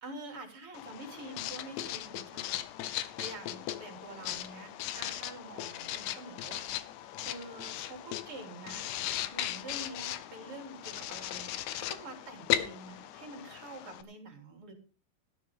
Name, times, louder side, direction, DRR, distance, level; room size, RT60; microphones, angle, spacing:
voice 1, 0.0-2.6 2.9-6.7 7.2-8.9 9.3-11.5 11.8-14.7, right 2 dB, 35° right, 4 dB, 3.5 m, -46 dB
Writing, 0.7-14.0, left 13 dB, 80° left, 3.1 m, -38 dB
16.0 x 13.5 x 3.6 m, 0.36 s
omnidirectional pair, 5.2 m